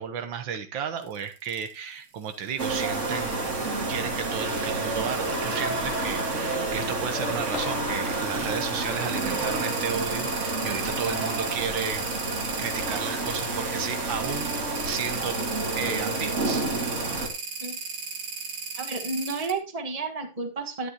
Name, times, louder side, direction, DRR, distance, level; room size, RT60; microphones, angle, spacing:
voice 1, 0.0-3.5 3.9-12.1 12.6-15.4 15.8-16.7, right 7 dB, 75° right, 8 dB, 1.6 m, -33 dB
sound 1, 1.0-1.7 2.3-3.7 4.4-6.5 7.6-19.5, right 5 dB, 55° right, 1.8 m, -37 dB
sound 2, 2.6-17.3, right 2 dB, 40° right, 2.1 m, -29 dB
Clapping, 7.5-9.6, left 10 dB, 85° left, 1.6 m, -43 dB
voice 2, 18.7-20.9, right 3 dB, 20° right, 5 dB, 1.4 m, -31 dB
11.5 x 9.6 x 2.9 m, 0.29 s
omnidirectional pair, 2.2 m